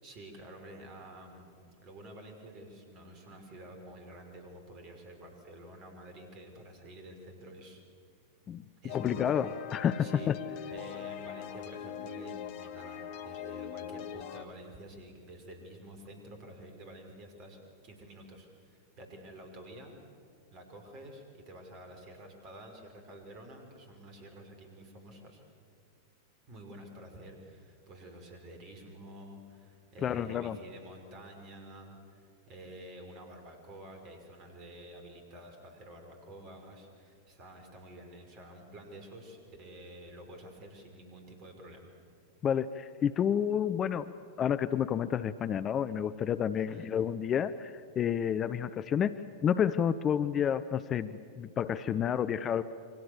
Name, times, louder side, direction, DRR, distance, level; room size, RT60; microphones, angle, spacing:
voice 1, 0.0-7.8 8.8-9.5 10.0-10.3 10.7-20.0 20.5-25.4 26.5-41.9 46.7-46.9, right 1 dB, 40° right, 4 dB, 5.7 m, -49 dB
sound 1, 8.9-14.4, left 9 dB, 45° left, 1.5 m, -42 dB
voice 2, 8.9-10.4 30.0-30.6 42.4-52.6, left 8 dB, 25° left, 14 dB, 0.7 m, -30 dB
29.0 x 24.0 x 7.2 m, 2.3 s
figure-of-eight pair, 90°, 0 cm